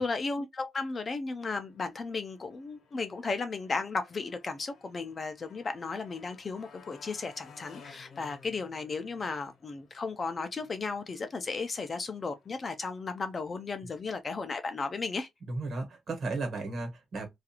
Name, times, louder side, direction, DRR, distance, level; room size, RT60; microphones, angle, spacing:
voice 1, 0.0-15.3, left 4 dB, 25° left, 0.4 m, -35 dB
Motorcycle, 1.6-13.7, left 6 dB, 55° left, 0.9 m, -58 dB
voice 2, 15.5-17.3, right 3 dB, 50° right, 1.2 m, -34 dB
2.4 x 2.4 x 2.7 m
wide cardioid pair, 180°, 0 cm